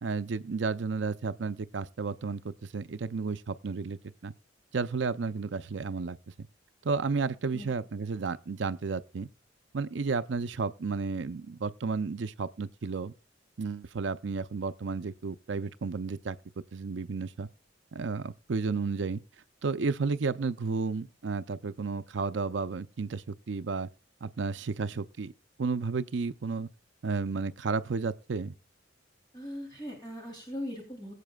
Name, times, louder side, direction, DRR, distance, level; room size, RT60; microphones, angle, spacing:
voice 1, 0.0-4.3 4.7-6.5 6.8-9.3 9.7-13.1 13.6-16.4 16.7-17.5 17.9-19.2 19.6-23.9 24.2-25.3 25.6-26.7 27.0-28.5, right 4 dB, 70° right, 0.5 m, -32 dB
voice 2, 29.3-31.1, equal, 25° left, 3.0 m, -39 dB
21.5 x 8.3 x 2.3 m
head